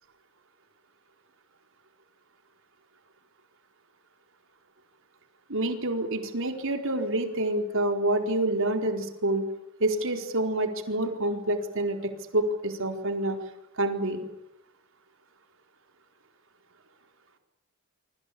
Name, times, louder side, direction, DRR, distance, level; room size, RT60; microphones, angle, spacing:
voice 1, 5.5-9.5 9.8-13.4 13.8-14.2, right 1 dB, 65° right, 5 dB, 4.5 m, -27 dB
26.0 x 25.5 x 8.6 m, 0.85 s
head